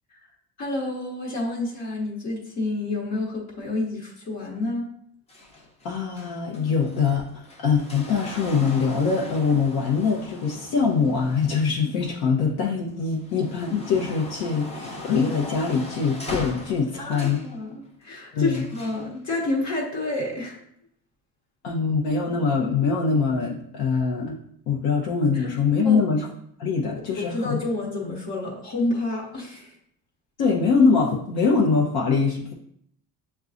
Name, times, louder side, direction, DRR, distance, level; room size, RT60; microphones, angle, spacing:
voice 1, 0.6-4.8 17.0-20.6 25.3-25.5 25.8-26.0 27.2-29.7, left 2 dB, 50° left, -3 dB, 1.1 m, -29 dB
sound 1, 5.3-12.5 13.0-17.5 18.5-19.1 20.0-20.1, left 2 dB, 15° left, 0.6 m, -39 dB
voice 2, 5.8-17.4 18.3-18.7 21.6-24.4 24.7-26.3 26.6-27.6 30.4-32.5, left 5 dB, 80° left, -2 dB, 0.8 m, -23 dB
6.8 x 2.3 x 2.5 m, 0.69 s
cardioid pair, 135°, 37 cm